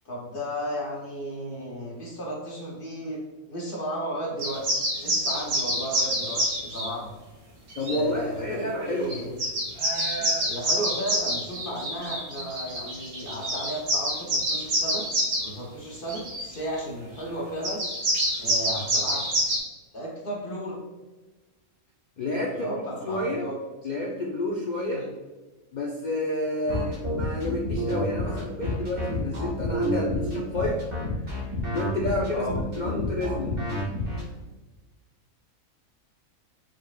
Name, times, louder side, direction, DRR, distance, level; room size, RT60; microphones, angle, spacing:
voice 1, 0.0-3.2 3.5-7.1 7.9-9.4 10.1-15.1 15.4-17.8 18.4-19.3 19.9-20.8 22.5-23.6 24.9-25.1 26.7-26.9 32.3-32.6, equal, 45° left, -2 dB, 0.9 m, -34 dB
sound 1, 4.4-6.9 7.7-8.0 8.8-8.9 9.1-15.5 16.1-16.5 17.6-19.6, right 1 dB, 80° right, 1.5 m, -27 dB
voice 2, 7.8-9.2 22.2-22.7 23.0-23.4 23.8-25.1 25.7-30.8 31.7-33.6, left 1 dB, 85° left, -2 dB, 0.4 m, -29 dB
sound 2, 26.7-34.2, left 1 dB, 40° right, 1.6 m, -29 dB
4.6 x 4.5 x 2.3 m, 1.2 s
omnidirectional pair, 1.5 m